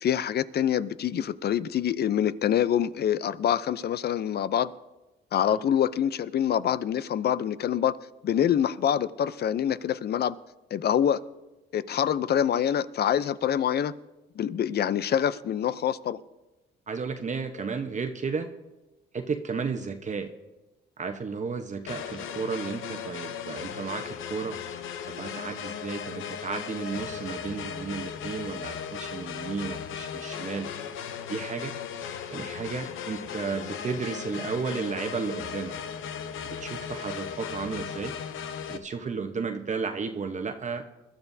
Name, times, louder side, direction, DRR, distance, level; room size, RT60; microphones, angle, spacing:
voice 1, 0.0-4.7 5.3-8.0 8.2-10.4 10.7-11.2 11.7-13.9 14.4-16.2, left 9 dB, 55° left, 0.6 m, -25 dB
voice 2, 16.9-18.5 19.1-20.3 21.0-24.6 25.1-30.7 31.3-31.7 32.3-35.7 36.6-38.1 38.7-40.8, right 5 dB, 35° right, 1.0 m, -33 dB
sound 1, 21.9-38.8, left 7 dB, 85° left, 0.8 m, -37 dB
21.5 x 13.0 x 2.7 m
cardioid pair, 90°, 20 cm